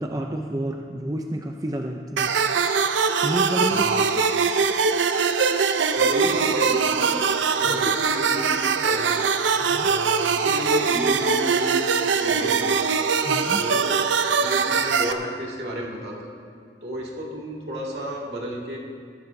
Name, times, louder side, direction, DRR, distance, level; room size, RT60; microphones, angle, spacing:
voice 1, 0.0-2.5 3.2-3.9 7.7-7.8 9.7-9.9 13.2-13.6, right 1 dB, 20° right, 2 dB, 0.5 m, -29 dB
sound 1, 2.2-15.1, right 5 dB, 90° right, 0.5 m, -22 dB
voice 2, 3.7-4.1 5.9-7.2 7.6-9.2 9.7-12.7 13.4-13.9 14.2-16.3 16.8-18.8, right 1 dB, 65° right, -3 dB, 2.3 m, -32 dB
15.5 x 15.0 x 2.7 m, 2.2 s
head